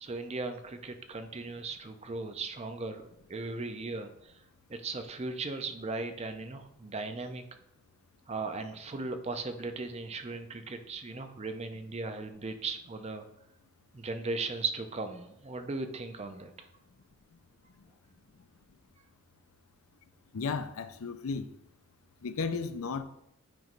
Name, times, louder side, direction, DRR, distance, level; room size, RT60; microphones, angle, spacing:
voice 1, 0.0-4.3 4.7-7.4 8.3-13.3 13.9-16.5, right 3 dB, 30° right, 0.5 m, -37 dB
voice 2, 20.3-21.5 22.2-23.0, left 4 dB, 75° left, 0.5 m, -34 dB
9.1 x 3.1 x 5.1 m
head